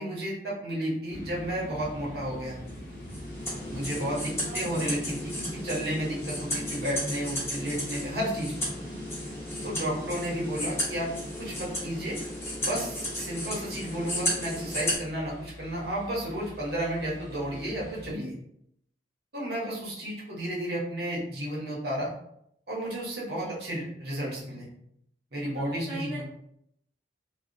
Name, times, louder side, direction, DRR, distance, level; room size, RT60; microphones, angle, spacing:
voice 1, 0.0-2.8 3.7-8.7 9.6-11.1 11.4-12.2 12.6-18.3 19.3-22.1 22.7-24.7 25.3-26.2, right 1 dB, 65° right, -5 dB, 1.0 m, -32 dB
sound 1, 1.1-18.1, left 1 dB, 45° left, 0.8 m, -46 dB
sound 2, 2.7-15.0, left 1 dB, 15° left, 0.7 m, -34 dB
voice 2, 4.4-4.9 8.9-9.2 19.8-19.9 23.3-23.6 25.6-26.2, right 1 dB, 40° right, -9 dB, 0.7 m, -40 dB
2.7 x 2.3 x 2.6 m, 0.73 s
head